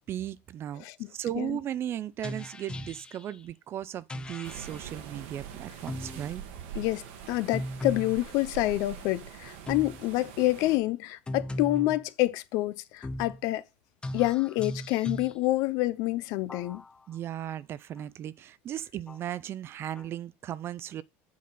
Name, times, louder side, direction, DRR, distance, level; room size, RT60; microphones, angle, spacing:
voice 1, 0.1-0.8 1.1-6.4 17.1-21.0, right 11 dB, 40° right, 0.4 m, -36 dB
sound 1, 2.2-3.4 4.1-4.9 5.9-6.3 7.5-8.2 9.7-10.1 11.3-12.0 13.0-13.4 14.0-15.4 16.5-17.2 18.0-18.1 19.1-19.3 20.0-20.1, left 1 dB, 15° left, 0.5 m, -38 dB
sound 2, 4.4-10.8, right 8 dB, 75° right, 1.3 m, -44 dB
voice 2, 7.3-13.6 14.1-16.8, left 17 dB, 65° left, 0.6 m, -27 dB
7.6 x 4.0 x 5.4 m
supercardioid pair, 105°, 6 cm